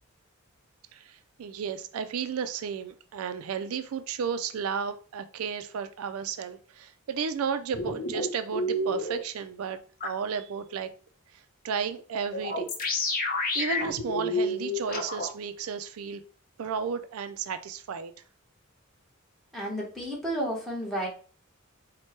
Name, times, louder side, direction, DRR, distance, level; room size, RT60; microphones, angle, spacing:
voice 1, 0.9-10.9 11.6-12.7 13.5-16.2 16.6-18.1, right 6 dB, 80° right, 0.4 m, -33 dB
sound 1, 7.7-9.2 10.0-10.1 12.3-15.3, left 2 dB, 40° left, 0.8 m, -29 dB
voice 2, 19.5-21.1, right 1 dB, ahead, 1.2 m, -32 dB
4.5 x 2.2 x 4.3 m
head